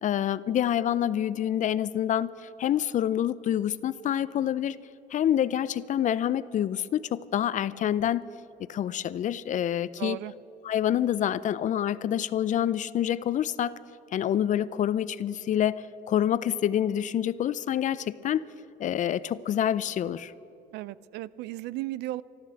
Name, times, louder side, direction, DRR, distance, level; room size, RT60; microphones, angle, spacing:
voice 1, 0.0-2.3 2.6-4.8 5.1-8.3 8.7-10.2 10.6-13.7 14.1-18.5 18.8-20.3, left 10 dB, 50° left, 17 dB, 0.5 m, -27 dB
voice 2, 10.0-10.3 20.7-22.2, right 16 dB, 85° right, 19 dB, 0.4 m, -35 dB
13.0 x 12.0 x 7.7 m, 2.8 s
cardioid pair, 110°, 17 cm